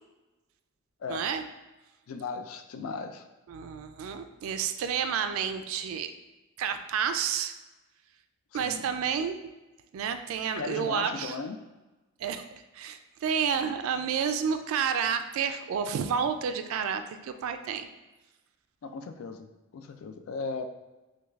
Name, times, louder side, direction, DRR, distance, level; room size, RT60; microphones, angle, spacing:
voice 1, 1.1-1.4 3.5-6.1 6.6-7.5 8.5-9.5 9.9-11.4 12.2-12.4 12.7-17.9, right 7 dB, 80° right, 10 dB, 0.3 m, -30 dB
voice 2, 2.1-3.3 8.5-8.9 10.6-11.6 18.8-20.6, left 4 dB, 85° left, 7 dB, 0.4 m, -37 dB
6.2 x 2.2 x 2.3 m, 1.1 s
head